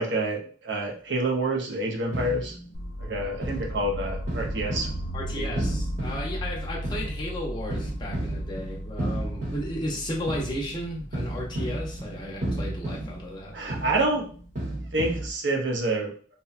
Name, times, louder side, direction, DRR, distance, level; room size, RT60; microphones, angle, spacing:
voice 1, 0.0-2.6 3.0-4.9 5.3-5.6 13.5-14.3 14.9-16.1, right 2 dB, 70° right, 0 dB, 0.6 m, -28 dB
sound 1, 2.1-2.9 3.4-15.3, right 1 dB, 40° right, 1.0 m, -34 dB
sound 2, 2.7-14.7, equal, 70° left, 0.5 m, -37 dB
voice 2, 5.1-13.5, equal, 25° left, -2 dB, 0.6 m, -34 dB
2.7 x 2.1 x 2.4 m, 0.43 s
head